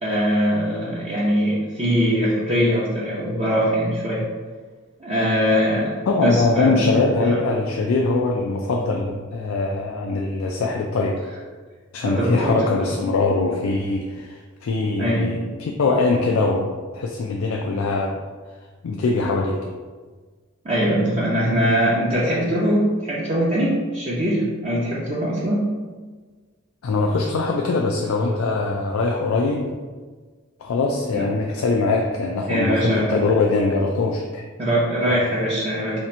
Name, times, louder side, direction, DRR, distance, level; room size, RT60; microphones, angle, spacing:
voice 1, 0.0-4.2 5.0-6.8 7.2-7.4 12.0-12.6 15.0-15.3 20.6-25.7 31.1-31.2 31.6-31.7 32.5-33.2 34.6-36.0, equal, 30° right, -8 dB, 0.6 m, -22 dB
voice 2, 6.1-11.2 11.9-18.2 18.8-19.6 26.8-29.7 30.6-34.4, left 3 dB, 80° left, 0 dB, 0.4 m, -22 dB
2.9 x 2.5 x 4.3 m, 1.4 s
head